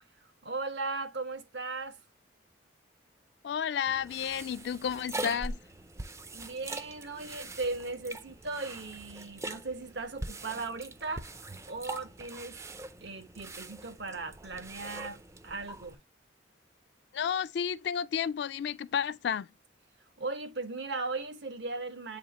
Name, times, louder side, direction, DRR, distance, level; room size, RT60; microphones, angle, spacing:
voice 1, 0.4-2.0 6.3-11.3 11.7-12.7 13.0-16.0 20.2-22.2, right 3 dB, 60° right, 0.9 m, -37 dB
voice 2, 3.4-5.6 17.1-19.5, left 8 dB, 60° left, 0.3 m, -31 dB
Water in drain, 3.9-15.9, right 2 dB, 15° right, 0.4 m, -43 dB
8.4 x 2.8 x 4.0 m
head